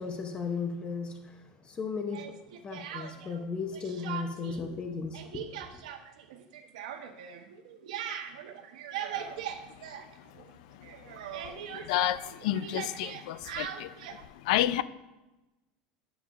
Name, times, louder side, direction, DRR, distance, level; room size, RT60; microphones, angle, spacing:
voice 1, 0.0-2.4 2.6-5.8, left 5 dB, 25° left, 0.7 m, -36 dB
Speech, 2.1-3.4 3.7-4.6 4.9-10.6 10.8-14.2, right 9 dB, 90° right, 0.8 m, -40 dB
voice 2, 11.5-13.9 14.4-14.8, left 13 dB, 75° left, 0.4 m, -30 dB
11.0 x 6.9 x 2.4 m
supercardioid pair, 135°, 4 cm